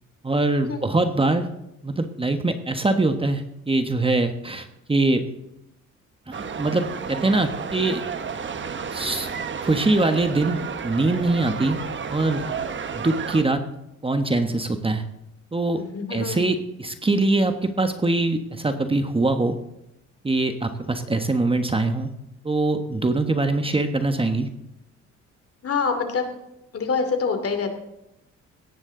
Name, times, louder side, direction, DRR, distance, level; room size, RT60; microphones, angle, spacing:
voice 1, 0.2-1.5 1.8-5.2 6.3-8.1 8.9-9.3 9.6-11.8 12.1-12.4 12.9-13.6 14.0-15.0 15.5-15.8 16.1-19.6 20.2-22.1 22.4-24.5, right 2 dB, 20° right, 7 dB, 1.2 m, -23 dB
sound 1, 6.3-13.4, right 6 dB, 40° right, 1.2 m, -32 dB
voice 2, 15.8-16.5 17.3-17.4 25.6-26.4 26.7-27.7, left 5 dB, 50° left, 7 dB, 2.6 m, -26 dB
17.5 x 13.5 x 3.8 m, 0.87 s
cardioid pair, 90°, 30 cm